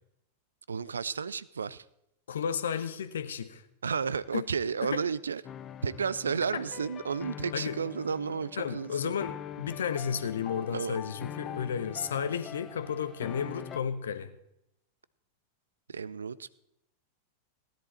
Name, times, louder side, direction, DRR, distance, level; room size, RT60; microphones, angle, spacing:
voice 1, 0.7-1.8 3.8-5.4 5.8-9.1 10.7-11.0 15.9-16.5, right 6 dB, 70° right, 0.4 m, -32 dB
voice 2, 2.3-3.6 4.3-4.4 4.8-5.0 6.5-6.6 7.5-7.8 8.6-14.3, left 7 dB, 65° left, 0.9 m, -33 dB
sound 1, 5.4-13.8, left 9 dB, 30° left, 0.6 m, -44 dB
16.0 x 10.5 x 4.2 m
figure-of-eight pair, 90°, 0 cm